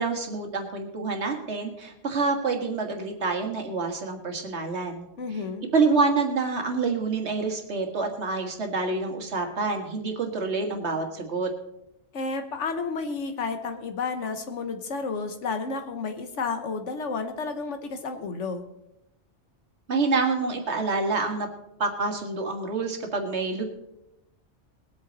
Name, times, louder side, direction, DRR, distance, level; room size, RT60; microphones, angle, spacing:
voice 1, 0.0-5.1 5.7-11.5 19.9-21.5 21.8-23.6, right 4 dB, 70° right, 3 dB, 1.9 m, -27 dB
voice 2, 5.2-5.7 12.1-18.6, left 4 dB, 80° left, 7 dB, 1.3 m, -31 dB
20.5 x 8.4 x 4.0 m, 0.88 s
omnidirectional pair, 1.2 m